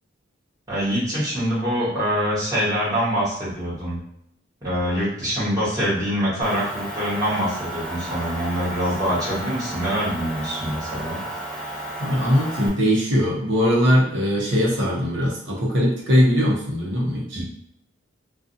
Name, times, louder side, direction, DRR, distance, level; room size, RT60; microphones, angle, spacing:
voice 1, 0.7-4.0 4.6-11.2 17.3-17.4, equal, 15° right, -10 dB, 1.2 m, -24 dB
Motor vehicle (road) / Engine, 6.4-12.7, right 1 dB, 5° left, 0.4 m, -33 dB
voice 2, 12.0-17.4, equal, 60° right, -3 dB, 0.7 m, -20 dB
2.5 x 2.3 x 2.6 m, 0.76 s
head